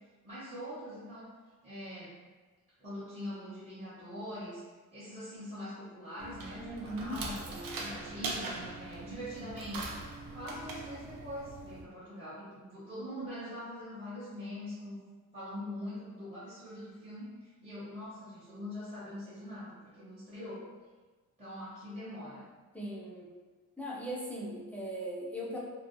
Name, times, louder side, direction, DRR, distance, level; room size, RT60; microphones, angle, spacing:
voice 1, 0.2-1.3 1.6-2.2 2.8-4.6 4.9-10.0 10.3-15.0 15.3-20.6 21.4-22.4, equal, 20° right, -12 dB, 0.7 m, -43 dB
sound 1, 6.2-11.8, right 3 dB, 70° right, 0.5 m, -41 dB
voice 2, 6.6-7.2 22.7-23.3 23.8-25.6, equal, 5° left, -5 dB, 0.3 m, -39 dB
2.6 x 2.2 x 2.5 m, 1.3 s
wide cardioid pair, 155°, 35 cm